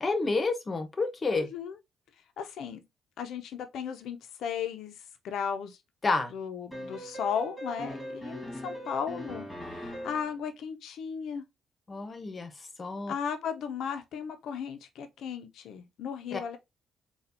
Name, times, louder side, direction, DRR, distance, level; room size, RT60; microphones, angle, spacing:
voice 1, 0.0-1.5 6.0-6.3 11.9-13.1 16.3-16.4, left 3 dB, 30° left, 0.9 m, -30 dB
voice 2, 1.3-1.8 2.4-2.8 3.2-5.8 6.3-11.4 13.1-16.6, left 7 dB, 75° left, 0.6 m, -36 dB
sound 1, 6.7-10.3, equal, 5° left, 1.9 m, -40 dB
4.2 x 2.3 x 2.6 m
cardioid pair, 90°, 0 cm